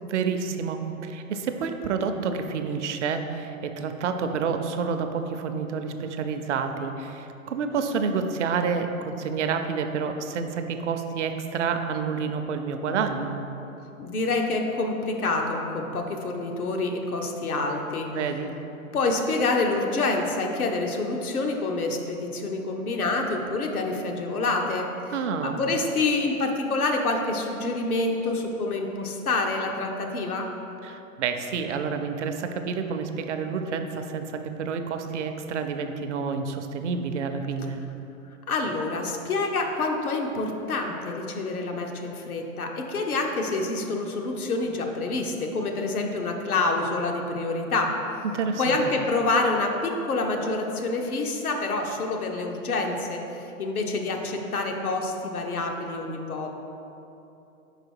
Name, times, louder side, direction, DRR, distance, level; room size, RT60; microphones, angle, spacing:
voice 1, 0.0-13.4 18.1-18.5 25.1-25.6 30.8-37.8 48.3-48.8, right 5 dB, 55° right, 7 dB, 0.6 m, -29 dB
voice 2, 14.0-18.1 18.9-25.1 25.4-30.5 38.5-47.9 48.6-56.5, left 3 dB, 90° left, 2 dB, 0.9 m, -27 dB
4.9 x 4.6 x 4.6 m, 2.9 s
hypercardioid pair, 130°, 43 cm